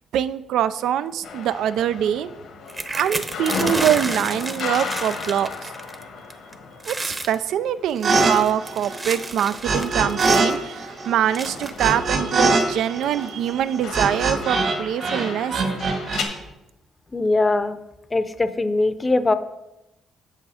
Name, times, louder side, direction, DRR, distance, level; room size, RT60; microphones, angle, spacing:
voice 1, 0.1-2.3 2.9-5.7 6.8-15.6, right 10 dB, 80° right, 14 dB, 0.4 m, -24 dB
sound 1, 1.2-9.3 9.6-16.2, left 5 dB, 80° left, 1.4 m, -35 dB
sound 2, 2.7-6.0 6.3-6.5 6.8-7.4 7.9-10.6 11.3-11.9 12.6-12.7 13.0-13.3, right 2 dB, 25° right, 0.9 m, -31 dB
sound 3, 8.0-8.3 8.6-10.5 10.7-14.8 15.0-16.2, right 3 dB, 65° right, 2.4 m, -22 dB
voice 2, 17.1-17.8 18.1-19.3, left 2 dB, 25° left, 12 dB, 0.6 m, -21 dB
8.5 x 6.4 x 4.9 m, 0.93 s
cardioid pair, 90°, 0 cm